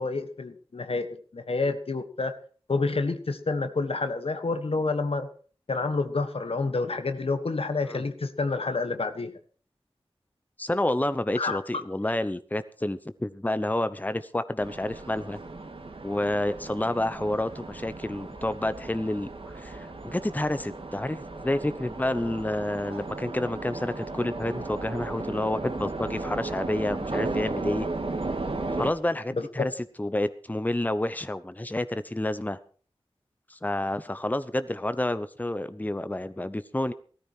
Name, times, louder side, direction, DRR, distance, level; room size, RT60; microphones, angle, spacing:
voice 1, 0.0-2.3 2.7-5.3 5.7-9.3 11.4-11.6 29.4-29.7, left 3 dB, 80° left, 9 dB, 1.4 m, -28 dB
voice 2, 10.6-15.4 16.0-19.3 19.5-27.9 28.8-29.7 30.0-32.6 33.5-36.9, left 1 dB, 15° left, 13 dB, 0.9 m, -29 dB
sound 1, 14.6-28.9, right 3 dB, 70° right, 2.0 m, -35 dB
16.5 x 14.0 x 4.5 m, 0.42 s
wide cardioid pair, 60°, 10 cm